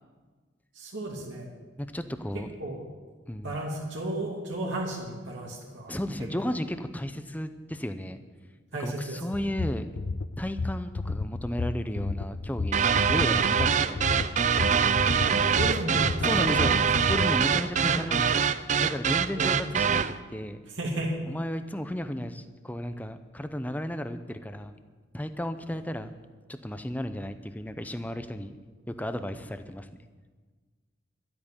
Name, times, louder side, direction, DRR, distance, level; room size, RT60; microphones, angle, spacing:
voice 1, 0.7-1.5 2.3-2.8 3.4-5.9 8.7-9.3 13.7-13.8 15.3-16.8 17.8-18.0 19.3-19.6 20.7-21.2, right 1 dB, 70° right, -3 dB, 2.5 m, -33 dB
voice 2, 1.8-2.5 3.3-3.6 5.9-8.2 8.8-9.9 10.4-12.8 13.1-15.3 16.2-16.8 17.1-18.5 18.8-20.0 20.3-20.6 21.3-24.7 25.1-26.2 26.5-28.5 28.9-30.0, equal, 10° left, 10 dB, 0.7 m, -34 dB
sound 1, 9.3-17.3, left 3 dB, 65° left, 0.6 m, -32 dB
sound 2, 12.7-20.2, right 7 dB, 40° right, 0.4 m, -24 dB
12.0 x 8.8 x 9.9 m, 1.4 s
head